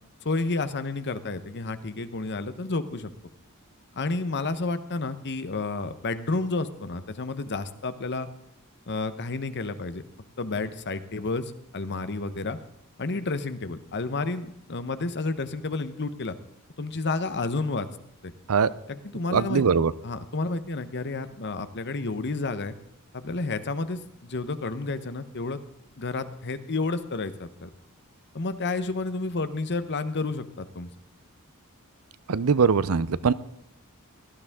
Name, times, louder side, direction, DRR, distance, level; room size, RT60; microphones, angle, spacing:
voice 1, 0.2-3.1 3.9-8.3 8.9-10.0 10.4-11.4 11.7-12.6 13.0-16.4 16.8-17.9 18.2-18.3 18.9-19.6 20.0-22.7 23.1-25.6 26.0-27.7 28.3-30.9, left 3 dB, 50° left, 12 dB, 1.0 m, -30 dB
voice 2, 19.3-19.9 32.3-33.3, right 5 dB, 70° right, 18 dB, 0.6 m, -21 dB
17.5 x 12.5 x 3.7 m, 0.78 s
head